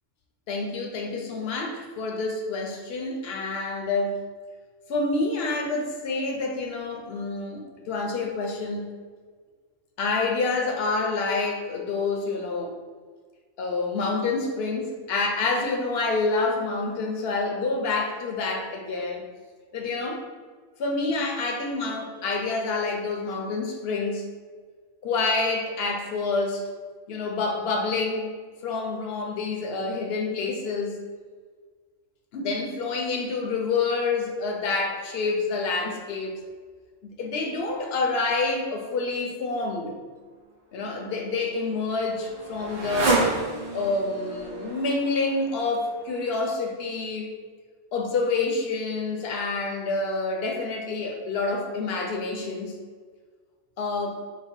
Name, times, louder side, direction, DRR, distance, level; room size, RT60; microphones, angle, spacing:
voice 1, 0.5-4.2 4.9-8.9 10.0-12.7 13.6-19.2 19.7-20.2 20.8-24.2 25.0-26.7 27.1-28.3 28.6-31.0 32.3-36.4 37.0-40.0 40.7-43.3 43.7-47.3 47.9-52.8 53.8-54.2, left 3 dB, 65° left, 1 dB, 0.8 m, -28 dB
Motorcycle, 40.9-46.3, right 3 dB, 50° right, 0.6 m, -30 dB
3.2 x 2.1 x 4.2 m, 1.5 s
omnidirectional pair, 1.2 m